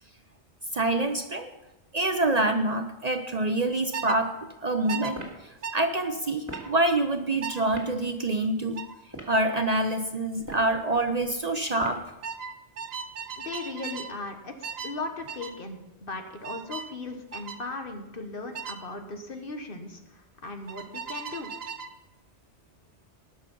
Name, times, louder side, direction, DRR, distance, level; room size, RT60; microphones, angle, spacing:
voice 1, 0.7-1.5 1.9-4.3 4.6-5.2 5.4-8.8 9.2-12.0, right 2 dB, 40° right, 7 dB, 0.8 m, -26 dB
sound 1, 3.9-4.2 4.9-5.1 5.6-5.8 6.5-6.7 7.4-7.7 8.8-9.0 10.4-10.7 11.0-11.3 12.2-14.2 14.6-15.0 15.3-15.6 16.4-16.9 17.3-17.6 18.5-18.8 20.7-22.0, right 6 dB, 65° right, 1.0 m, -37 dB
sound 2, 5.2-5.4 6.4-6.7 7.7-7.9 9.0-9.4 10.3-10.7 11.8-12.1, right 1 dB, 15° right, 2.4 m, -40 dB
voice 2, 13.4-14.5 14.8-21.5, left 3 dB, 55° left, 5 dB, 1.5 m, -37 dB
19.5 x 6.5 x 5.4 m, 0.98 s
omnidirectional pair, 1.2 m